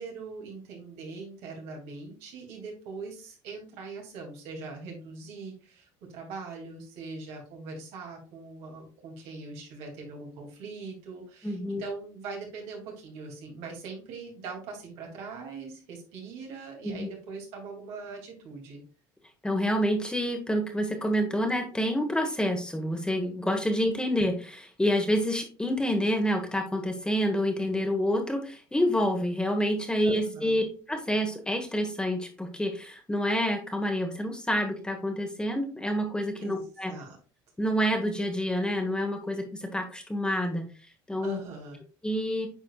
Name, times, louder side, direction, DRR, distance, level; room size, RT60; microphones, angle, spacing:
voice 1, 0.0-18.8 30.0-30.6 36.4-37.2 41.2-41.8, right 4 dB, 75° right, 0 dB, 2.7 m, -41 dB
voice 2, 11.4-11.8 16.8-17.1 19.4-36.9 37.6-40.7 41.1-41.4 42.0-42.5, equal, 10° left, 4 dB, 1.3 m, -28 dB
8.8 x 4.8 x 2.4 m, 0.37 s
supercardioid pair, 100°, 11 cm